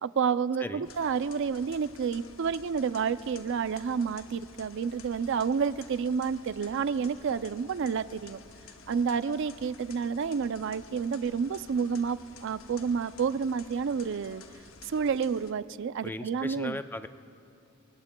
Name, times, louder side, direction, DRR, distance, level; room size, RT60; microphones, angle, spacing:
voice 1, 0.0-8.4 8.9-14.4 14.8-16.8, right 6 dB, 60° right, 15 dB, 0.4 m, -30 dB
sound 1, 0.8-15.5, left 5 dB, 70° left, 0.9 m, -52 dB
voice 2, 16.0-17.1, left 2 dB, 10° left, 10 dB, 0.4 m, -37 dB
26.5 x 22.0 x 2.2 m, 2.7 s
head